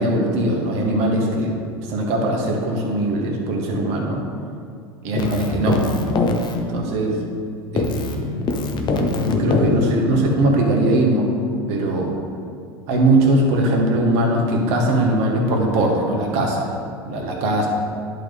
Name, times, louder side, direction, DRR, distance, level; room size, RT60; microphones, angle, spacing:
voice 1, 0.0-1.5 1.9-4.3 5.0-5.9 6.7-7.1 7.7-8.3 9.2-11.3 11.7-12.1 12.9-16.7 17.0-17.7, right 1 dB, 55° right, 0 dB, 1.6 m, -20 dB
Keyboard (musical), 5.1-7.4 7.8-10.5, left 3 dB, 35° left, 0.8 m, -23 dB
11.0 x 4.0 x 3.5 m, 2.4 s
hypercardioid pair, 85°, 14 cm